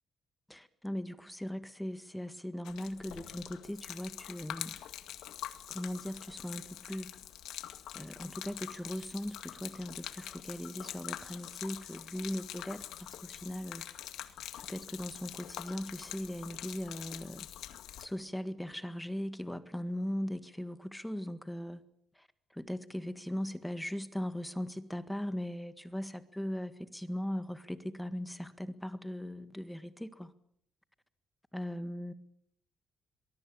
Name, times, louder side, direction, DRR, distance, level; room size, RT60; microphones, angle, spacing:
voice 1, 0.5-4.8 5.7-7.1 7.9-13.8 14.6-17.5 18.0-21.8 22.5-30.3 31.5-32.1, left 1 dB, 5° left, 1.7 m, -39 dB
Gurgling / Liquid, 2.7-18.1, left 12 dB, 85° left, 2.0 m, -45 dB
23.0 x 21.5 x 8.7 m
cardioid pair, 90°, 0 cm